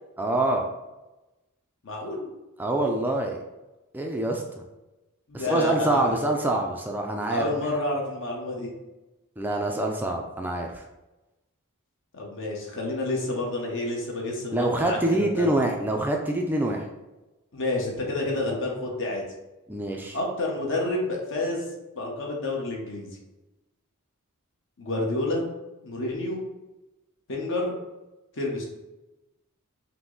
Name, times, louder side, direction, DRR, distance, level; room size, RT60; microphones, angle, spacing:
voice 1, 0.2-0.7 2.6-3.4 3.9-4.4 5.3-7.5 9.4-10.8 14.5-16.8 19.7-20.2, right 1 dB, 10° right, 1 dB, 0.3 m, -25 dB
voice 2, 1.8-2.3 5.3-6.1 7.3-8.7 12.1-15.5 17.5-19.2 20.1-21.7 22.0-23.1 24.8-25.5 25.8-26.4 27.3-27.7 28.4-28.7, left 2 dB, 60° left, -1 dB, 1.0 m, -29 dB
5.8 x 2.1 x 3.8 m, 1.0 s
head